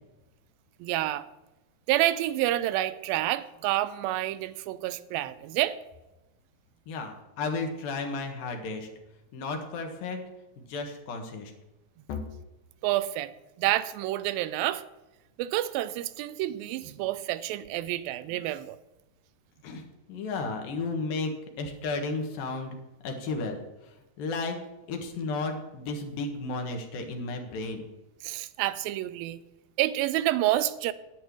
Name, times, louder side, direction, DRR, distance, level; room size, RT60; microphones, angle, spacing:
voice 1, 0.8-1.3 1.9-5.8 12.8-13.3 13.6-14.8 15.4-18.8 28.2-29.4 29.8-30.9, right 14 dB, 90° right, 14 dB, 2.4 m, -28 dB
voice 2, 6.9-8.9 9.3-10.2 10.6-11.5 12.1-12.2 19.6-21.3 21.6-22.8 23.0-23.6 24.2-24.6 24.9-27.8, left 3 dB, 80° left, 4 dB, 3.2 m, -33 dB
11.0 x 9.4 x 4.6 m, 1.0 s
omnidirectional pair, 4.1 m